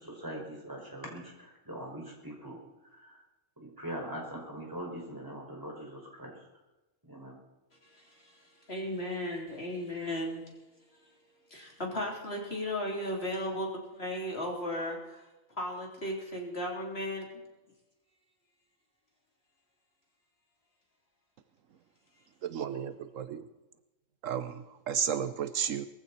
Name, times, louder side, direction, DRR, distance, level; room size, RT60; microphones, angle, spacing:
voice 1, 0.0-3.2 3.6-6.4 7.0-7.4, right 1 dB, 15° right, -2 dB, 5.6 m, -42 dB
voice 2, 7.7-15.3 15.6-17.4 22.1-22.3, left 1 dB, 50° left, -1 dB, 3.8 m, -36 dB
voice 3, 22.4-23.4 24.2-24.5 24.9-25.9, right 8 dB, 75° right, 11 dB, 1.1 m, -32 dB
21.5 x 15.0 x 4.3 m, 1.1 s
omnidirectional pair, 1.4 m